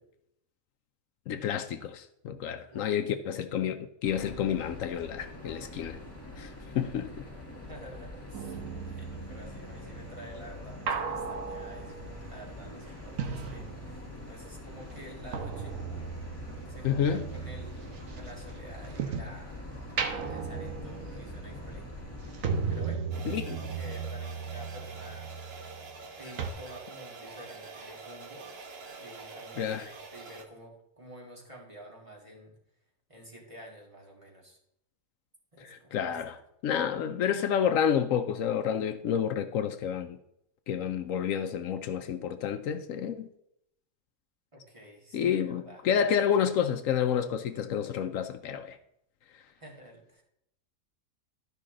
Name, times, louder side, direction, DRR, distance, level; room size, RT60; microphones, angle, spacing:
voice 1, 1.3-6.0 6.4-7.1 16.8-17.2 23.2-23.6 29.6-29.9 35.6-36.3 36.6-40.2 40.7-43.3 45.1-48.8, left 8 dB, 75° left, 1.0 m, -29 dB
sound 1, 4.0-22.8, left 1 dB, 10° left, 1.6 m, -44 dB
voice 2, 7.7-11.9 12.3-15.8 16.7-21.9 22.7-25.3 26.2-28.6 29.0-32.5 33.1-34.6 35.5-36.4 44.5-45.8 49.5-50.2, right 1 dB, 25° right, 1.7 m, -50 dB
sound 2, 8.3-14.3 14.6-19.4 19.8-26.1 26.4-26.5, right 6 dB, 70° right, 1.2 m, -37 dB
sound 3, 23.1-30.4, right 4 dB, 50° right, 1.2 m, -46 dB
12.0 x 5.4 x 3.8 m
omnidirectional pair, 1.5 m